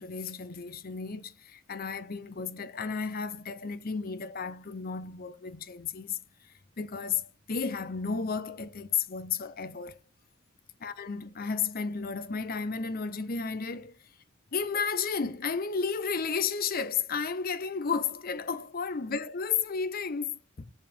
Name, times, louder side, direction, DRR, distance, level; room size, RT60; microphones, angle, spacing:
voice 1, 0.0-6.2 6.8-10.0 10.8-14.0 14.5-20.7, left 5 dB, 45° left, 0.7 m, -33 dB
5.4 x 4.9 x 5.3 m
head